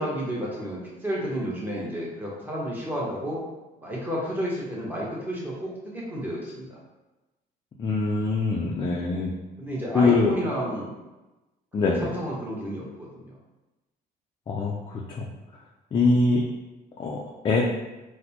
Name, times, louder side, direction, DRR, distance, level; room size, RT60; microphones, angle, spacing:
voice 1, 0.0-3.4 3.8-6.8 9.6-10.9 11.8-13.3, equal, 10° right, -5 dB, 1.0 m, -31 dB
voice 2, 7.8-9.3 9.9-10.3 11.7-12.1 14.5-15.3 15.9-16.4 17.0-17.7, left 3 dB, 30° left, -2 dB, 0.4 m, -23 dB
4.1 x 2.1 x 2.8 m, 1.1 s
cardioid pair, 110°, 17 cm